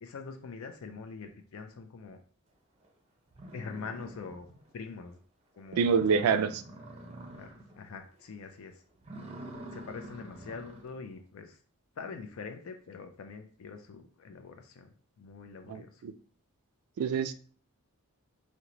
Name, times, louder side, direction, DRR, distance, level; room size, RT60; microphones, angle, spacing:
voice 1, 0.0-2.2 3.5-4.5 4.7-5.2 5.6-6.5 7.3-7.5 7.8-8.8 9.7-11.6 12.0-14.9 15.2-15.9, left 5 dB, 70° left, 6 dB, 0.4 m, -44 dB
sound 1, 2.8-2.9 3.3-4.7 5.1-5.2 5.6-5.7 5.9-7.8 8.1-8.5 9.0-11.0, right 1 dB, 30° right, 0.5 m, -47 dB
voice 2, 5.7-6.5 15.7-16.1 17.0-17.3, right 6 dB, 85° right, 11 dB, 0.3 m, -26 dB
2.9 x 2.1 x 3.8 m, 0.43 s
head